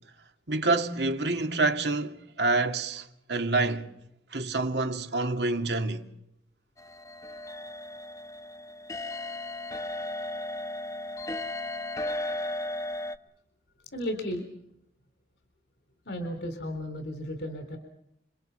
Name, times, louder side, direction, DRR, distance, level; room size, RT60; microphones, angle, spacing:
voice 1, 0.5-3.9 4.3-6.1, right 3 dB, 75° right, 2.4 m, -27 dB
sound 1, 6.8-13.2, left 2 dB, 20° left, 0.9 m, -35 dB
voice 2, 13.9-14.5 16.1-17.8, equal, 75° left, 4.0 m, -34 dB
30.0 x 22.5 x 5.7 m
head